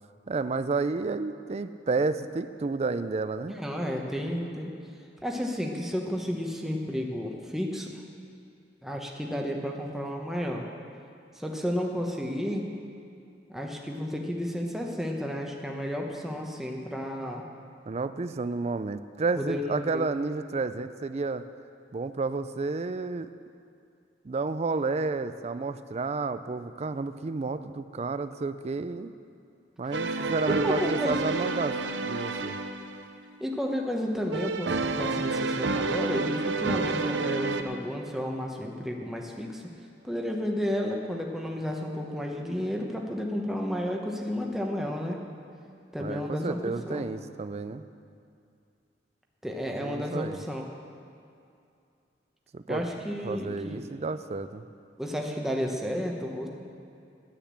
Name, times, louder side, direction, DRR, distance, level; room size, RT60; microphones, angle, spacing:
voice 1, 0.3-3.5 17.9-21.4 21.9-23.3 24.2-29.1 29.8-32.6 46.0-47.8 49.8-50.4 52.5-52.8 53.2-54.6, right 3 dB, 35° right, 12 dB, 0.4 m, -31 dB
voice 2, 3.5-4.7 5.2-7.9 8.8-10.6 11.3-12.7 13.5-17.4 19.3-20.1 30.5-31.3 33.4-39.6 40.0-45.2 45.9-47.0 49.4-50.7 52.7-53.8 55.0-56.5, equal, ahead, 0 dB, 1.0 m, -32 dB
sound 1, 29.9-33.1 34.3-37.6, right 3 dB, 75° right, 0.7 m, -29 dB
10.0 x 8.1 x 8.8 m, 2.5 s
head